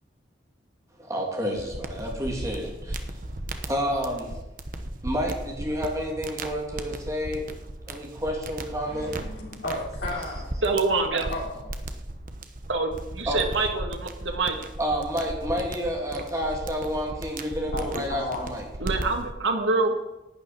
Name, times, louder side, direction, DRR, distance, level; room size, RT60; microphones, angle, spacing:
voice 1, 1.0-3.2 3.7-4.4 5.0-7.5 7.9-9.1 13.3-13.4 14.8-18.6, equal, 15° right, -1 dB, 2.9 m, -30 dB
sound 1, 1.6-19.3, right 1 dB, 45° right, 1.0 m, -36 dB
voice 2, 8.9-10.6 11.3-11.7 17.7-18.5, left 2 dB, 60° left, -3 dB, 3.4 m, -34 dB
voice 3, 10.6-11.3 12.7-14.6 18.8-20.0, right 3 dB, 80° right, 3 dB, 2.0 m, -25 dB
11.5 x 6.8 x 9.6 m, 0.99 s
head